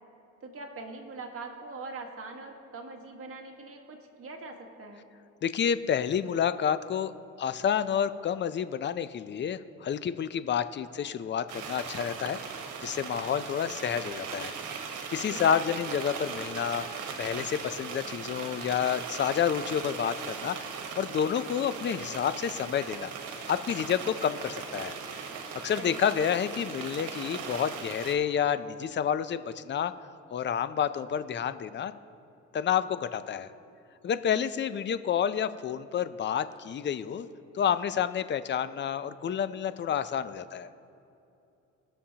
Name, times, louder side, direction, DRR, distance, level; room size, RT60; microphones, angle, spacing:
voice 1, 0.4-5.1 15.3-15.7 25.8-26.1 34.3-34.6, right 3 dB, 45° right, 2 dB, 1.6 m, -42 dB
voice 2, 5.4-7.1 7.4-14.5 15.1-20.7 21.0-23.1 23.5-24.9 25.6-29.9 30.3-31.9 32.5-33.5 34.0-37.3 37.5-40.7, left 8 dB, 40° left, 13 dB, 0.5 m, -29 dB
sound 1, 11.5-28.1, right 6 dB, 80° right, 1.3 m, -39 dB
21.0 x 7.1 x 2.9 m, 2.7 s
cardioid pair, 90°, 30 cm